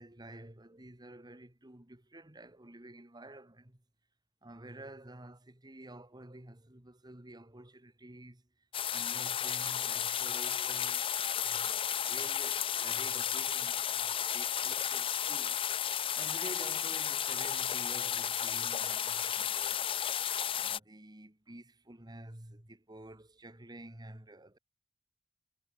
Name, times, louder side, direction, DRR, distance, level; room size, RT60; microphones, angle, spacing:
voice 1, 0.0-3.8 4.4-8.4 8.7-15.6 16.2-19.9 20.5-24.6, right 1 dB, 20° right, 1.8 m, -50 dB
sound 1, 8.7-20.8, left 9 dB, 25° left, 0.4 m, -33 dB
head